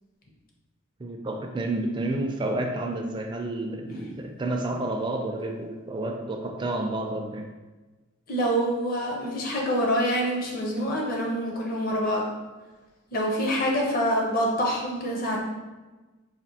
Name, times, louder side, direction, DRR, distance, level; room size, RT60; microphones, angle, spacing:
voice 1, 1.0-7.5, right 2 dB, 25° right, 2 dB, 0.3 m, -30 dB
voice 2, 8.3-12.3 13.1-15.4, equal, 45° left, -1 dB, 0.7 m, -26 dB
4.1 x 2.5 x 2.8 m, 1.2 s
head